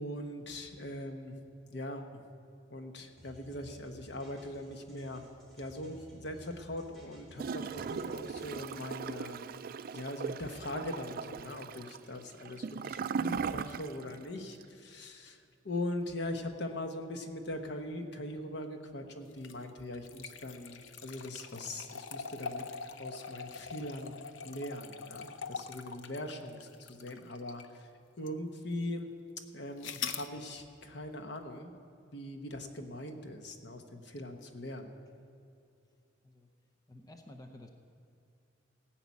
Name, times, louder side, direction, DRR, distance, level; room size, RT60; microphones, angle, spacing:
voice 1, 0.0-1.4 1.7-2.2 2.7-5.3 5.6-9.4 9.9-22.7 23.0-27.9 28.2-29.1 29.5-31.7 32.1-34.9, left 1 dB, 65° left, 5 dB, 1.1 m, -41 dB
sound 1, 3.2-8.7, equal, ahead, 3.2 m, -57 dB
Gurgling / Toilet flush, 7.4-14.2 14.5-14.6, right 6 dB, 50° right, 0.3 m, -38 dB
sound 2, 19.3-27.8 28.3-28.4 29.8-30.3, left 6 dB, 80° left, 0.6 m, -43 dB
voice 2, 36.9-37.7, left 1 dB, 20° left, 4 dB, 0.7 m, -52 dB
17.5 x 5.9 x 8.4 m, 2.5 s
head